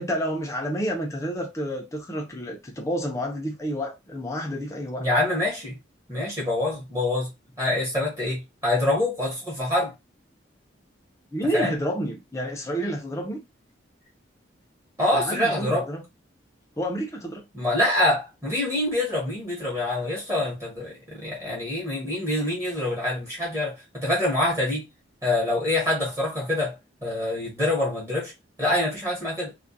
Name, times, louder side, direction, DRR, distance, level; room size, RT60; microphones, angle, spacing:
voice 1, 0.0-5.1 11.3-13.4 15.1-16.0 16.8-17.5, equal, 15° left, 0.4 m, -29 dB
voice 2, 5.0-5.8 6.1-7.3 7.6-9.9 11.5-11.7 15.0-15.9 17.5-24.8 25.2-26.8 27.0-28.3 28.6-29.5, left 1 dB, 15° right, 0.9 m, -25 dB
2.3 x 2.1 x 2.6 m
head